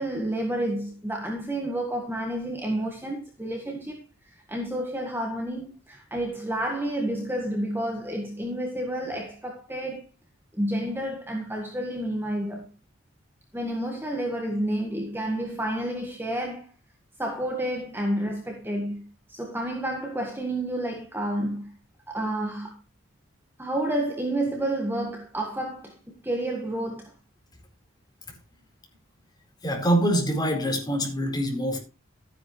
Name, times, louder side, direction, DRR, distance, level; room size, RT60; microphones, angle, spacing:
voice 1, 0.0-4.0 4.5-10.0 10.5-12.7 13.5-16.7 17.2-19.0 19.3-21.7 22.1-22.8 23.6-27.1, right 1 dB, 10° right, 1.8 m, -30 dB
voice 2, 29.6-31.8, right 1 dB, 20° left, 4.3 m, -24 dB
13.5 x 10.5 x 3.2 m
head